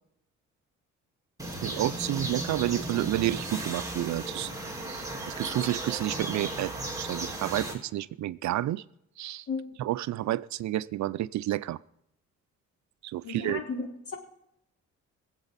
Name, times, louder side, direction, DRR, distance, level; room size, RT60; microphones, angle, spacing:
sound 1, 1.4-7.7, right 2 dB, 10° right, 3.6 m, -35 dB
voice 1, 1.6-8.8 9.2-9.5 9.8-11.8 13.0-13.6, right 14 dB, 70° right, 17 dB, 0.5 m, -30 dB
voice 2, 13.2-13.8 14.1-14.2, left 4 dB, 50° left, 0 dB, 4.1 m, -33 dB
23.5 x 8.1 x 4.1 m, 0.79 s
cardioid pair, 90°, 30 cm